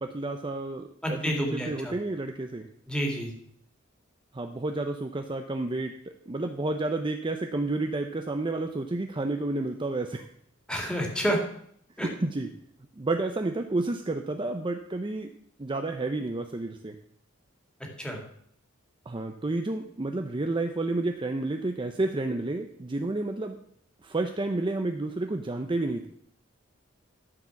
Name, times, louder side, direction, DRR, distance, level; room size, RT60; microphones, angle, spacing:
voice 1, 0.0-2.7 4.3-5.9 6.3-10.3 12.0-12.5 13.0-15.3 15.6-17.0 19.1-23.6 24.0-26.1, right 2 dB, 25° right, 5 dB, 0.5 m, -30 dB
voice 2, 1.0-1.9 2.9-3.3 10.7-11.4 12.0-12.1 18.0-18.2, equal, 5° left, 0 dB, 2.3 m, -29 dB
12.5 x 4.9 x 7.0 m, 0.67 s
head